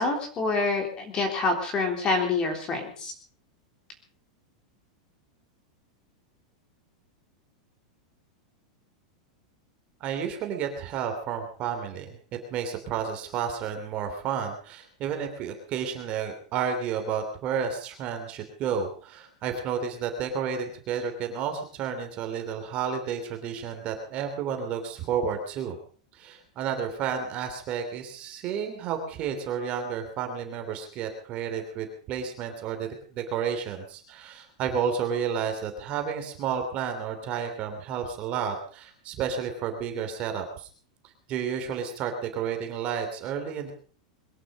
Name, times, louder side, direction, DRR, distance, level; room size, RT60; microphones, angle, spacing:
voice 1, 0.0-3.1, left 3 dB, 20° left, 4 dB, 3.7 m, -27 dB
voice 2, 10.0-25.8 26.2-40.7 41.3-43.7, right 7 dB, 30° right, 5 dB, 3.1 m, -31 dB
22.0 x 11.5 x 5.3 m, 0.44 s
supercardioid pair, 165°, 4 cm